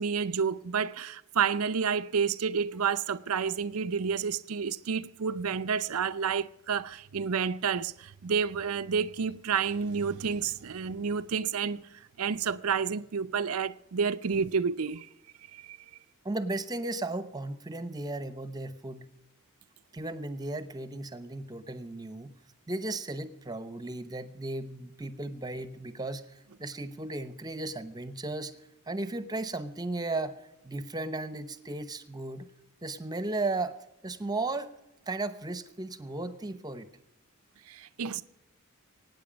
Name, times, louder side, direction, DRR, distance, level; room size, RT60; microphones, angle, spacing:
voice 1, 0.0-15.1 15.5-15.8 37.7-38.2, right 6 dB, 85° right, 0.6 m, -30 dB
voice 2, 16.2-19.0 19.9-22.3 22.7-28.5 28.9-32.5 32.8-33.8 34.0-34.7 35.1-36.9, right 2 dB, 20° right, 0.9 m, -35 dB
24.0 x 9.4 x 5.2 m
head